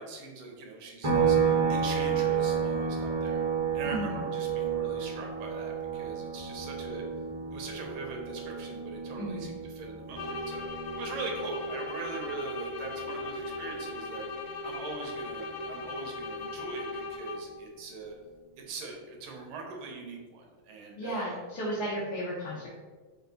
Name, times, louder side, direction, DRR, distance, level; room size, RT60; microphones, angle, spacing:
voice 1, 0.0-3.4 3.7-7.0 7.5-14.2 14.6-18.1 18.6-21.4, right 3 dB, 85° right, 1 dB, 1.7 m, -41 dB
sound 1, 1.0-14.6 14.9-17.1, right 6 dB, 50° right, 0.3 m, -32 dB
voice 2, 3.8-4.2 9.2-9.4 21.0-22.7, right 1 dB, 55° left, -7 dB, 1.4 m, -34 dB
sound 2, 10.1-17.6, left 2 dB, 75° left, 0.9 m, -38 dB
5.7 x 2.4 x 3.8 m, 1.4 s
omnidirectional pair, 2.3 m